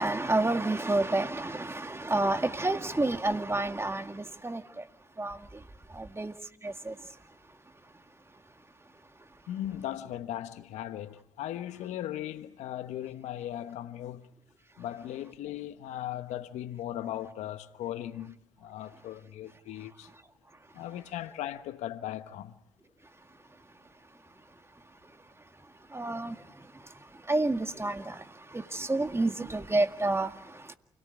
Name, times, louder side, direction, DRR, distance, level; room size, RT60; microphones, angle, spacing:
voice 1, 0.0-4.9 5.2-5.6 5.9-6.3 6.6-7.0 25.9-26.9 27.2-30.7, right 2 dB, 20° right, 1.9 m, -30 dB
voice 2, 9.5-14.3 14.8-20.1 20.7-22.5, left 12 dB, 80° left, 1.1 m, -38 dB
28.5 x 18.0 x 9.7 m
hypercardioid pair, 40°, 12 cm